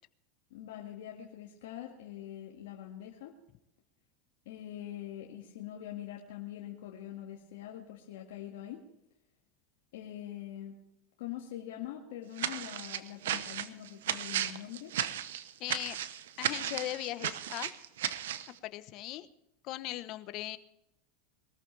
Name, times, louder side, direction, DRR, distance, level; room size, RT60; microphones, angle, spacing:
voice 1, 0.5-3.3 4.5-8.8 9.9-10.8 11.2-14.9, left 12 dB, 80° left, -1 dB, 1.9 m, -44 dB
sound 1, 12.4-18.5, right 11 dB, 85° right, 0.9 m, -35 dB
voice 2, 15.6-16.0 16.4-17.7 18.6-19.3 19.6-20.6, left 15 dB, 50° left, 13 dB, 1.0 m, -38 dB
21.5 x 14.0 x 3.4 m, 0.84 s
supercardioid pair, 115°, 0 cm